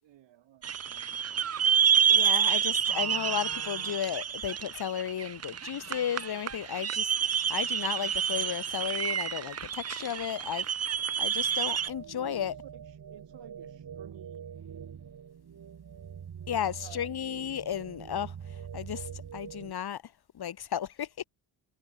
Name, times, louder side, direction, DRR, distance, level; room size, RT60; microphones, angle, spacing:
voice 1, 0.0-1.6 12.4-14.5 16.8-17.2, right 12 dB, 70° right, 7.2 m, -54 dB
sound 1, 0.6-11.9, right 8 dB, 35° right, 0.9 m, -28 dB
voice 2, 2.1-10.6 11.2-12.6 16.5-18.3 18.7-20.0 20.3-21.2, left 9 dB, 55° left, 2.7 m, -34 dB
sound 2, 11.9-19.7, right 8 dB, 50° right, 3.4 m, -44 dB
supercardioid pair, 55°, 45 cm